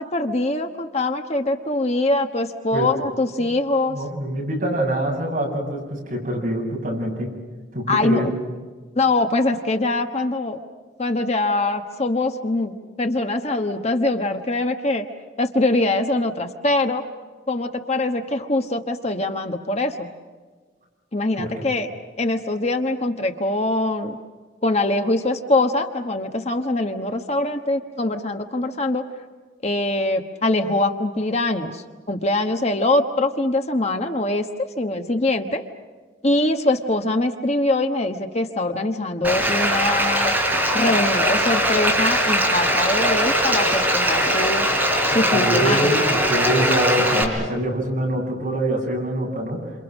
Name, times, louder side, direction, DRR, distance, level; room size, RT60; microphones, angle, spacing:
voice 1, 0.0-4.0 7.9-8.3 9.0-10.6 11.0-15.1 15.4-17.0 17.5-20.1 21.1-21.9 22.2-24.2 24.6-29.1 29.6-34.5 34.8-35.6 36.2-40.3 40.7-44.7 45.1-45.9, left 2 dB, 35° left, 6 dB, 1.2 m, -23 dB
voice 2, 3.9-7.3 7.7-8.3 21.4-21.5 45.3-49.7, right 1 dB, 45° right, -1 dB, 8.0 m, -24 dB
Bathtub (filling or washing), 39.2-47.2, equal, 10° right, 4.3 m, -20 dB
28.5 x 28.0 x 6.3 m, 1.4 s
head